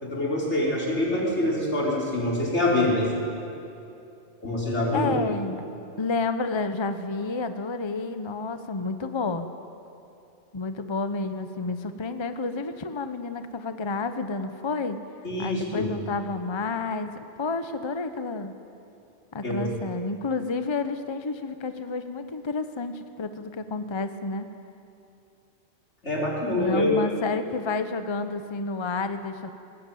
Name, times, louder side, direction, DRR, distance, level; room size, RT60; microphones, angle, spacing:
voice 1, 0.0-3.1 4.4-5.1 15.2-15.9 19.4-19.7 26.0-26.9, left 1 dB, 85° left, -4 dB, 5.0 m, -25 dB
voice 2, 4.9-5.6 6.0-9.5 10.5-15.0 15.4-17.1 17.4-18.5 19.3-24.5 26.6-29.5, left 3 dB, 25° left, 9 dB, 0.9 m, -30 dB
20.5 x 19.5 x 9.2 m, 2.8 s
omnidirectional pair, 1.2 m